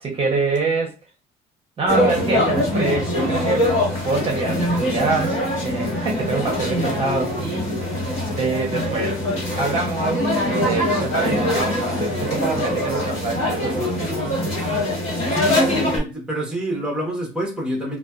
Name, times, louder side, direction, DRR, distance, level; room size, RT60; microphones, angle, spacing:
voice 1, 0.0-0.9 1.8-3.7 4.0-5.4 5.6-7.7 8.3-9.2 9.6-14.1, right 3 dB, 35° right, 0.8 m, -25 dB
sound 1, 1.9-16.0, left 1 dB, 40° left, 1.5 m, -23 dB
voice 2, 15.3-18.0, right 1 dB, 5° right, 0.9 m, -27 dB
2.4 x 2.2 x 2.3 m
cardioid pair, 110°, 17 cm